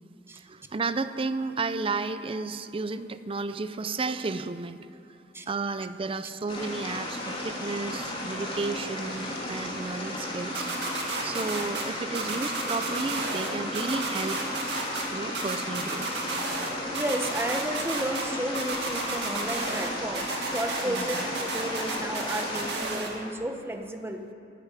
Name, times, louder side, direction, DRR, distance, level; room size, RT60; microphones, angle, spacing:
voice 1, 0.4-4.8 5.5-10.7 11.2-14.4 15.1-16.1 20.8-21.2, right 3 dB, 30° right, 12 dB, 0.5 m, -32 dB
sound 1, 6.5-22.7, left 1 dB, 30° left, 2.8 m, -35 dB
sound 2, 10.5-11.8 12.1-13.5 13.7-15.0 15.3-16.7 16.9-18.2 18.5-19.9 20.1-23.1, right 3 dB, 65° right, 2.3 m, -32 dB
voice 2, 16.9-24.2, right 1 dB, 15° right, 5 dB, 1.0 m, -33 dB
12.0 x 9.3 x 9.9 m, 2.7 s
head